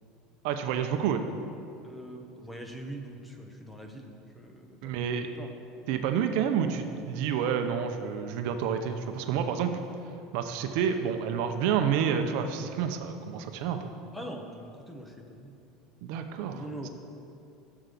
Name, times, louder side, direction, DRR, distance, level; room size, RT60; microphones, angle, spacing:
voice 1, 0.4-1.2 4.8-5.3 5.9-9.7 10.3-13.9 16.0-16.6, right 7 dB, 65° right, 7 dB, 0.7 m, -29 dB
voice 2, 1.8-5.5 14.1-15.5 16.5-16.9, right 1 dB, 5° left, 3 dB, 1.1 m, -43 dB
7.5 x 7.0 x 8.3 m, 2.7 s
supercardioid pair, 135°, 0 cm